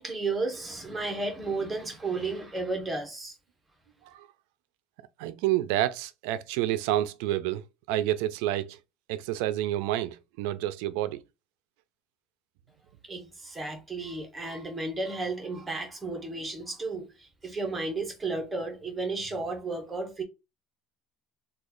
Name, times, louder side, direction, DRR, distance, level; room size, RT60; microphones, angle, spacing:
voice 1, 0.0-3.3 13.1-20.2, right 3 dB, 15° right, 0.9 m, -33 dB
voice 2, 5.2-8.8 9.1-11.2, right 13 dB, 85° right, 0.3 m, -29 dB
3.0 x 2.3 x 3.7 m
cardioid pair, 150°, 0 cm